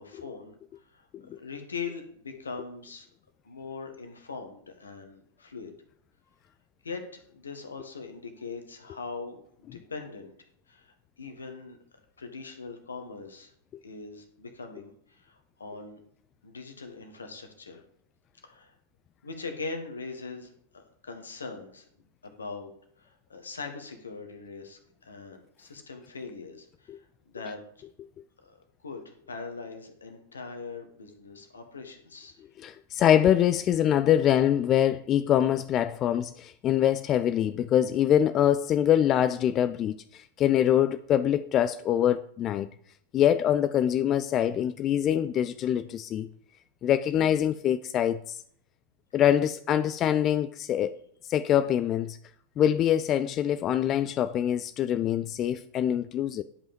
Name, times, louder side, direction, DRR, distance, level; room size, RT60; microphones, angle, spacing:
voice 1, 0.0-3.1 3.4-5.7 6.8-10.3 10.7-11.8 12.2-13.5 13.8-16.0 16.4-17.8 18.4-18.7 19.2-21.9 22.2-22.7 23.0-27.8 28.4-32.4, left 4 dB, 75° left, 1.5 m, -41 dB
voice 2, 32.6-42.7 43.1-46.3 46.8-48.4 49.1-51.0 51.3-52.2 52.6-56.4, left 10 dB, 30° left, 0.4 m, -24 dB
10.5 x 5.5 x 5.2 m
figure-of-eight pair, 90°, 0 cm